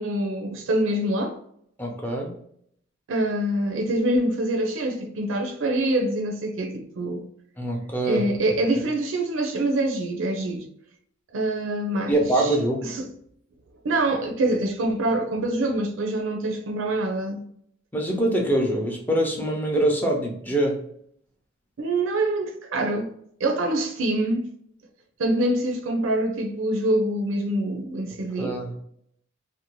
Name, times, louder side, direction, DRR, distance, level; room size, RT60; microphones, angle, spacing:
voice 1, 0.0-1.4 3.1-7.3 8.0-10.7 11.3-12.5 12.8-13.1 13.8-17.4 21.8-23.1 23.4-24.5 25.2-28.6, right 1 dB, 70° right, 0.4 m, -25 dB
voice 2, 1.8-2.3 7.6-8.2 12.1-12.9 17.9-20.8 28.4-28.8, right 1 dB, 10° left, 0.5 m, -24 dB
2.6 x 2.0 x 2.9 m
head